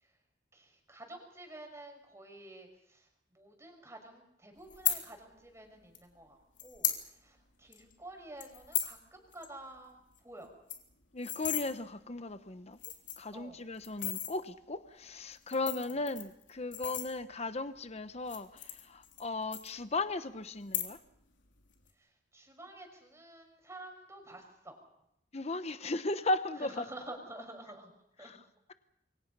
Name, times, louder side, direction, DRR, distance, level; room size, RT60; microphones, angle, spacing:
voice 1, 0.5-10.5 13.3-13.6 22.0-24.8 26.6-27.9 28.2-28.4, right 1 dB, 15° right, 5.4 m, -50 dB
sound 1, 4.7-5.0 5.9-6.0 6.6-7.0 7.4-7.5 7.7-7.9 8.4-9.0 9.3-9.5 9.7-9.8 10.1-10.2 10.5-11.6 12.3-12.4 12.7-13.3 13.8-14.3 15.3-17.5 18.2-19.2 19.5-20.1 20.6-21.2 21.5-21.9, left 11 dB, 80° left, 3.5 m, -35 dB
voice 2, 11.1-12.8 13.2-21.0 25.3-26.8 28.2-28.4, left 2 dB, 35° left, 0.9 m, -36 dB
28.0 x 23.5 x 5.5 m
head